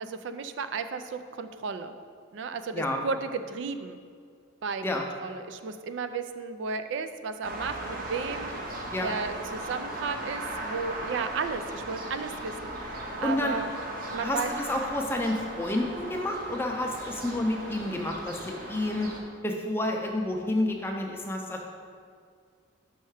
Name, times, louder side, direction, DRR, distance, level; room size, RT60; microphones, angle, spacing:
voice 1, 0.0-1.9 2.3-4.0 4.6-8.6 9.0-13.6 14.1-14.5, right 5 dB, 65° right, 9 dB, 0.3 m, -34 dB
sound 1, 7.4-19.2, right 1 dB, 45° right, 0.7 m, -37 dB
voice 2, 13.2-13.6 14.2-19.1 19.4-21.6, left 1 dB, 10° left, 1 dB, 0.5 m, -29 dB
5.6 x 5.5 x 4.8 m, 2.2 s
head